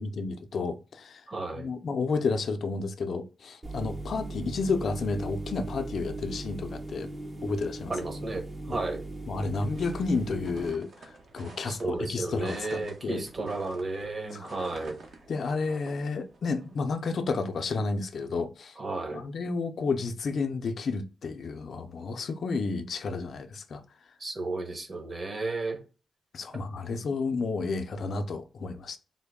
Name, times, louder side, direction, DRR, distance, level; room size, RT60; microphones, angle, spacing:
voice 1, 0.0-1.2 1.5-7.1 7.4-8.0 8.7-8.8 9.3-13.3 14.3-14.5 15.3-18.8 19.1-23.8 26.3-29.0, left 4 dB, 65° left, 0.4 m, -31 dB
voice 2, 1.3-1.7 7.9-9.0 11.7-15.0 18.8-19.2 24.2-25.8, right 3 dB, 40° right, 1.1 m, -33 dB
sound 1, 3.6-10.7, right 2 dB, 25° right, 0.6 m, -38 dB
sound 2, 9.5-17.0, right 3 dB, 65° right, 1.0 m, -49 dB
3.7 x 2.2 x 3.5 m
cardioid pair, 95°, 0 cm